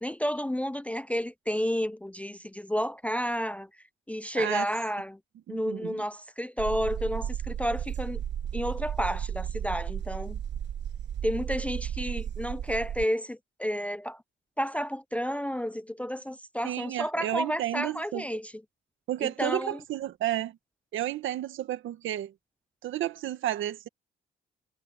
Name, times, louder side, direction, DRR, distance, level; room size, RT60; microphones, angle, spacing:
voice 1, 0.0-3.7 4.1-5.2 5.5-8.2 8.5-10.4 11.2-14.2 14.6-18.5 19.2-19.8, equal, 5° left, 0.5 m, -31 dB
voice 2, 4.4-4.7 5.5-6.0 16.6-18.3 19.1-20.6 20.9-22.3 22.8-23.9, right 12 dB, 80° right, 1.9 m, -32 dB
sound 1, 6.6-13.0, right 9 dB, 65° right, 1.3 m, -34 dB
cardioid pair, 90°, 20 cm